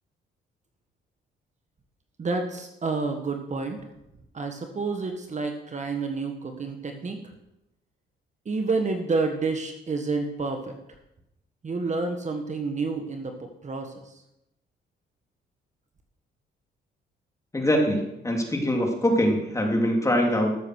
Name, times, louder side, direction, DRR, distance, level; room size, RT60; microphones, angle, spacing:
voice 1, 2.2-3.8 4.3-7.2 8.4-10.7 11.6-13.9, right 3 dB, 35° right, 5 dB, 1.5 m, -29 dB
voice 2, 17.5-20.5, equal, 15° left, 1 dB, 3.0 m, -23 dB
14.0 x 7.2 x 6.3 m, 0.88 s
cardioid pair, 90°, 20 cm